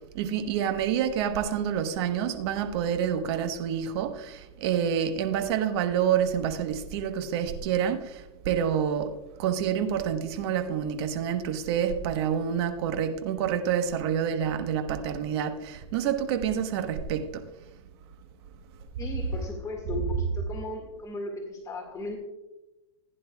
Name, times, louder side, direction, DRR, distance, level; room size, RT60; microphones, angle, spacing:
voice 1, 0.1-17.4, right 8 dB, 55° right, 1.2 m, -28 dB
voice 2, 19.0-22.2, left 2 dB, 20° left, 1.9 m, -36 dB
15.5 x 10.0 x 2.3 m
hypercardioid pair, 120°, 16 cm